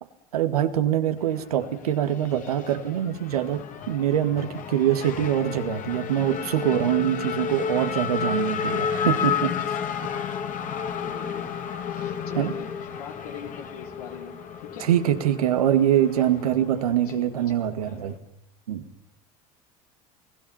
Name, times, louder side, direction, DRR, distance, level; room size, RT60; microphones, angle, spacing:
voice 1, 0.3-9.5 12.4-12.5 14.8-18.2 18.7-18.8, right 10 dB, 80° right, 8 dB, 2.2 m, -24 dB
Race car auto racing / Accelerating revving vroom, 1.2-18.2, left 7 dB, 45° left, 3.0 m, -32 dB
voice 2, 11.0-11.5 11.9-12.7 12.9-14.3 14.6-14.9 17.1-17.6, left 7 dB, 75° left, 3 dB, 4.0 m, -41 dB
29.5 x 19.5 x 5.8 m, 0.75 s
hypercardioid pair, 75°, 19 cm